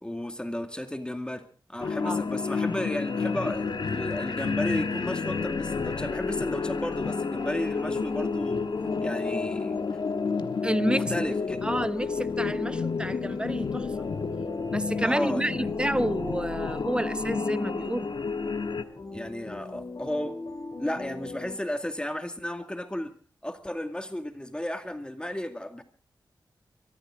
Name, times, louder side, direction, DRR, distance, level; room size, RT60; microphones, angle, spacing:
voice 1, 0.0-8.7 9.0-9.8 10.8-11.6 15.0-15.7 19.1-20.3 20.8-23.1 23.4-25.8, left 1 dB, 10° left, 2.1 m, -33 dB
sound 1, 1.8-18.8, left 5 dB, 70° left, 1.3 m, -30 dB
sound 2, 4.7-21.6, left 2 dB, 50° left, 3.2 m, -39 dB
voice 2, 10.6-11.3 11.6-13.9 14.7-18.1, right 1 dB, 10° right, 0.9 m, -30 dB
24.0 x 14.0 x 3.8 m
cardioid pair, 60°, 8 cm